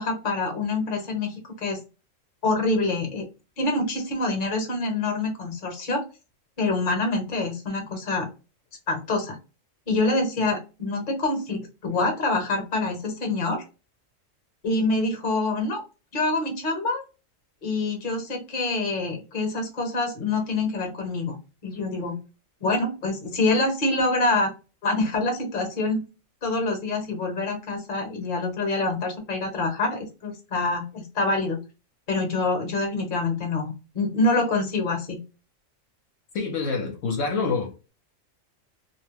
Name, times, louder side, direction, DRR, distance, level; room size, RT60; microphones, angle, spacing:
voice 1, 0.0-1.8 2.4-3.3 3.6-6.0 6.6-8.3 8.9-9.4 9.9-13.6 14.6-15.8 16.1-17.0 17.6-21.4 21.6-22.2 22.6-24.5 24.8-26.0 26.4-31.6 32.1-35.2, left 2 dB, 40° left, 0.9 m, -26 dB
voice 2, 36.3-37.9, left 4 dB, 70° left, 1.0 m, -27 dB
2.5 x 2.1 x 3.2 m
omnidirectional pair, 1.4 m